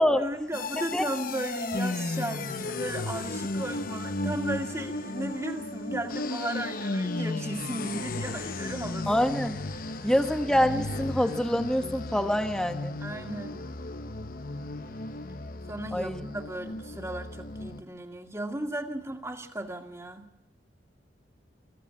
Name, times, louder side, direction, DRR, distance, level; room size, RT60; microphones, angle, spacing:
voice 1, 0.2-9.1 9.8-9.9 13.0-13.7 15.7-20.3, right 1 dB, 15° right, 4 dB, 2.1 m, -35 dB
sound 1, 0.5-17.8, left 2 dB, 50° left, 1.0 m, -35 dB
voice 2, 9.1-9.6 10.0-13.0 15.9-16.2, equal, 5° left, 6 dB, 1.2 m, -25 dB
22.5 x 15.0 x 8.5 m, 0.95 s
head